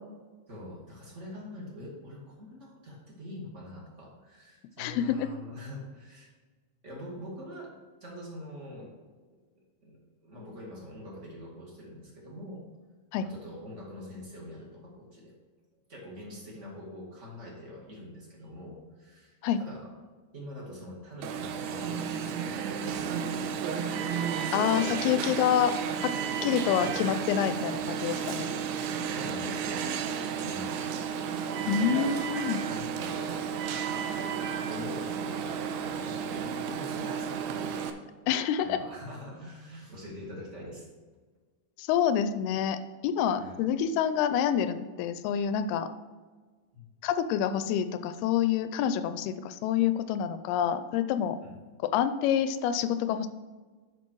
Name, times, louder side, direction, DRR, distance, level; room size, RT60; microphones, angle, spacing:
voice 1, 0.5-6.3 6.8-7.7 8.0-8.9 9.3-9.4 9.8-12.6 13.2-15.3 15.9-19.9 20.3-23.5 24.7-25.4 26.4-27.1 29.1-29.9 30.3-30.9 31.6-32.2 32.6-33.5 33.8-37.8 38.6-40.9 43.4-43.6 46.7-46.8 51.4-51.5, left 1 dB, 30° right, -3 dB, 1.3 m, -44 dB
voice 2, 4.8-5.3 13.1-13.3 19.4-19.6 24.5-25.7 26.0-26.1 26.4-28.5 31.7-32.6 38.3-38.8 41.8-42.8 43.0-45.9 47.0-51.4 51.9-53.3, left 9 dB, 85° left, 11 dB, 2.4 m, -27 dB
Alarm, 21.2-37.9, right 7 dB, 80° right, 2.6 m, -32 dB
10.5 x 5.7 x 4.6 m, 1.4 s
omnidirectional pair, 4.7 m